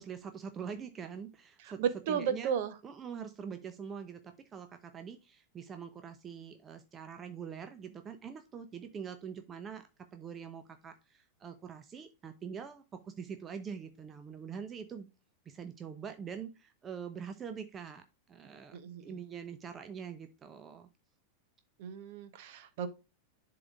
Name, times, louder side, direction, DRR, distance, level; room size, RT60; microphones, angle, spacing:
voice 1, 0.0-1.8 2.1-2.5 2.8-15.1 15.5-20.9, right 7 dB, 25° right, 0.5 m, -44 dB
voice 2, 1.8-2.7 18.7-19.2 21.8-22.9, right 8 dB, 50° right, 0.9 m, -34 dB
11.0 x 3.9 x 2.4 m
figure-of-eight pair, 90°, 0 cm